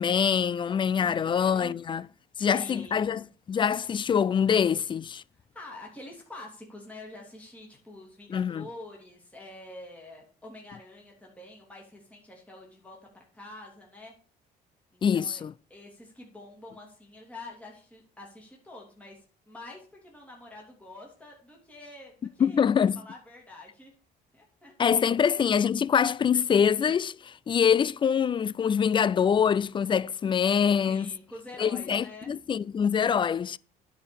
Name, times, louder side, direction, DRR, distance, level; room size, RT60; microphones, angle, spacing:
voice 1, 0.0-2.1 2.4-5.2 8.3-8.7 15.0-15.5 22.4-23.0 24.8-31.1 31.6-33.6, left 7 dB, 30° left, 0.3 m, -25 dB
voice 2, 0.9-1.8 2.4-3.1 5.4-14.1 14.9-15.4 15.7-22.7 23.0-23.9 24.3-24.7 30.9-32.3, left 2 dB, 10° left, 2.8 m, -47 dB
10.0 x 4.8 x 7.0 m
cardioid pair, 110°, 17 cm